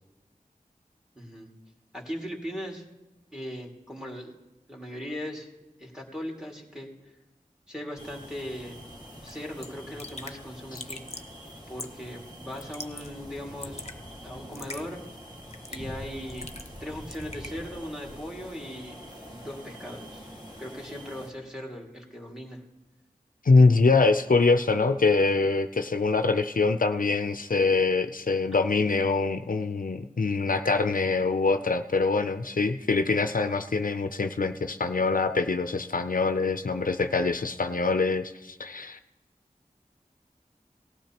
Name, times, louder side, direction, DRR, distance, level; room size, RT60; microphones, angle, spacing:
voice 1, 1.2-1.5 1.9-2.8 3.3-4.4 4.7-5.5 5.8-6.9 7.7-8.8 9.2-11.0 11.7-13.9 14.2-15.0 15.7-16.5 16.8-20.3 20.6-22.6, equal, 5° right, -1 dB, 2.1 m, -38 dB
sound 1, 8.0-21.3, equal, 30° right, 1.9 m, -45 dB
Raindrop / Drip, 9.3-9.4 9.6-9.7 10.0-10.4 10.7-11.3 11.8-12.1 12.5-13.1 13.4-14.0 14.5-14.8 15.5-15.9 16.3-16.8 17.1-17.5, left 2 dB, 45° left, 0.8 m, -41 dB
voice 2, 23.4-39.0, left 3 dB, 70° left, 8 dB, 0.5 m, -24 dB
18.0 x 12.0 x 2.9 m, 1.0 s
wide cardioid pair, 40°, 15 cm